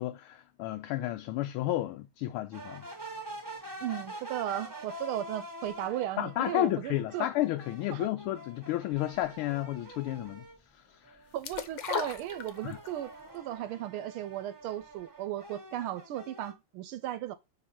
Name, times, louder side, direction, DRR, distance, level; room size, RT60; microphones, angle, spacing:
voice 1, 0.0-2.8 6.2-10.5 10.9-11.2 12.6-12.8, left 14 dB, 80° left, 1.5 m, -32 dB
sound 1, 2.5-10.6 11.0-16.5, right 1 dB, 15° right, 0.8 m, -46 dB
voice 2, 3.8-7.3 7.9-8.1 11.3-17.4, right 12 dB, 80° right, 1.4 m, -36 dB
sound 2, 11.4-13.0 13.3-13.4, left 9 dB, 65° left, 1.3 m, -35 dB
6.1 x 3.9 x 5.7 m
omnidirectional pair, 2.4 m